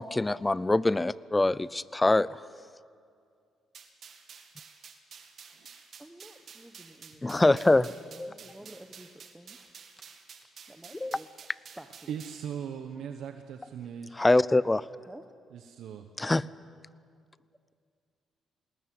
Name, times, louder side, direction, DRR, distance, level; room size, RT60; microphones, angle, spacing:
voice 1, 0.0-2.4 7.2-7.9 8.2-8.3 11.0-11.2 14.2-14.8 16.2-16.5, left 2 dB, 15° left, 20 dB, 0.5 m, -24 dB
sound 1, 3.7-12.5, right 6 dB, 55° right, 2.2 m, -51 dB
voice 2, 6.0-10.1 10.4-11.3 11.8-11.9 15.1-15.2, right 1 dB, 10° right, 6 dB, 1.1 m, -51 dB
voice 3, 12.1-14.2 15.5-16.1, right 8 dB, 75° right, 6 dB, 1.2 m, -39 dB
20.0 x 19.0 x 9.4 m, 2.2 s
cardioid pair, 90°, 0 cm